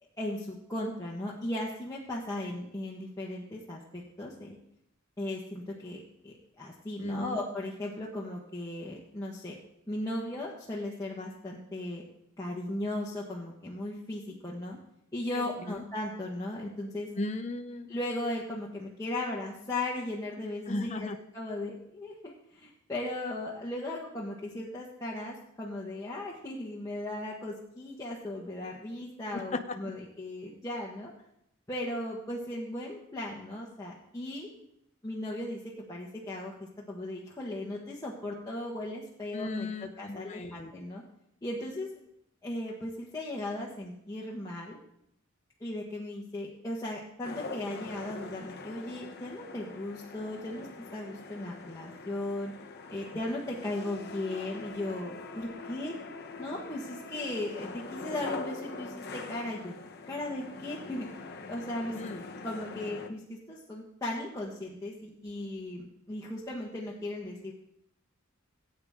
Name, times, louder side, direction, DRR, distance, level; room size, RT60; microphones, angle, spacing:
voice 1, 0.2-4.6 5.2-9.6 9.9-12.0 12.4-14.8 15.1-17.1 17.9-31.1 31.7-34.5 35.0-35.6 35.9-36.5 36.9-41.0 41.4-41.9 42.4-44.8 45.6-50.7 50.9-52.5 52.9-55.9 56.4-59.8 60.1-61.1 61.5-62.0 62.4-67.5, left 1 dB, 15° left, -5 dB, 1.4 m, -37 dB
voice 2, 7.0-7.4 15.4-15.8 17.2-17.9 20.7-21.2 29.3-29.4 39.3-40.7 61.9-62.2, left 2 dB, 35° left, 6 dB, 0.6 m, -36 dB
sound 1, 47.2-63.1, left 3 dB, 50° left, 0.9 m, -43 dB
17.5 x 8.9 x 3.7 m, 0.77 s
head